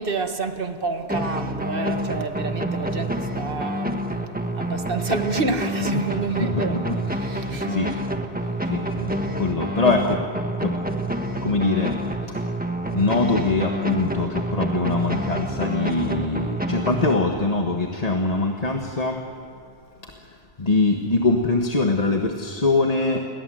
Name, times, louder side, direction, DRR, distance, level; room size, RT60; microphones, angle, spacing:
voice 1, 0.0-4.0 4.5-6.8 7.1-7.9, right 3 dB, 60° right, 1.8 m, -28 dB
sound 1, 1.1-17.6, right 1 dB, 10° right, 1.4 m, -28 dB
voice 2, 6.4-7.0 7.4-7.9 8.7-9.1 9.4-10.2 10.6-10.7 11.4-11.9 12.9-19.2 20.6-23.2, left 3 dB, 40° left, 1.6 m, -23 dB
29.0 x 22.0 x 7.8 m
omnidirectional pair, 1.1 m